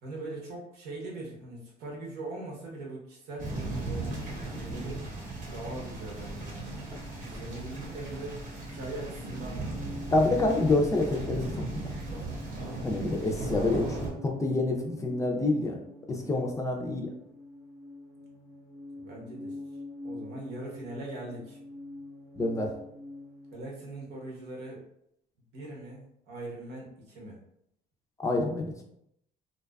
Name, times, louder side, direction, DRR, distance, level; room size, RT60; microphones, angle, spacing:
voice 1, 0.0-5.0 5.5-6.9 7.2-8.3 8.6-9.7 16.2-16.5 18.9-19.6 20.0-21.6 23.5-24.8 25.5-27.4, right 2 dB, 80° right, -3 dB, 0.9 m, -41 dB
sound 1, 3.4-14.1, right 2 dB, 55° right, 0.9 m, -37 dB
sound 2, 6.8-23.5, left 2 dB, 15° right, 0.7 m, -46 dB
voice 2, 10.1-11.6 12.8-14.0 14.2-15.8 16.1-17.1 22.4-22.7 28.2-28.7, left 2 dB, 20° left, 1 dB, 0.4 m, -27 dB
2.5 x 2.3 x 2.2 m, 0.75 s
cardioid pair, 110°, 17 cm